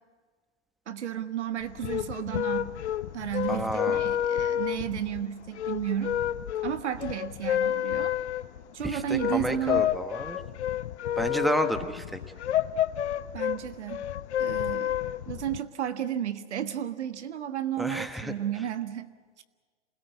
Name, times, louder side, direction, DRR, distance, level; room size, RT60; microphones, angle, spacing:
voice 1, 0.9-2.7 3.1-6.2 6.6-8.1 8.7-10.0 13.3-14.1 14.4-15.0 15.3-19.4, right 10 dB, 75° right, 10 dB, 1.5 m, -33 dB
sound 1, 1.6-15.6, left 11 dB, 70° left, 0.8 m, -30 dB
voice 2, 3.5-4.0 8.8-10.4 11.2-12.2 17.8-18.3, equal, ahead, 8 dB, 1.3 m, -31 dB
27.0 x 17.5 x 8.5 m, 1.5 s
hypercardioid pair, 110°, 35 cm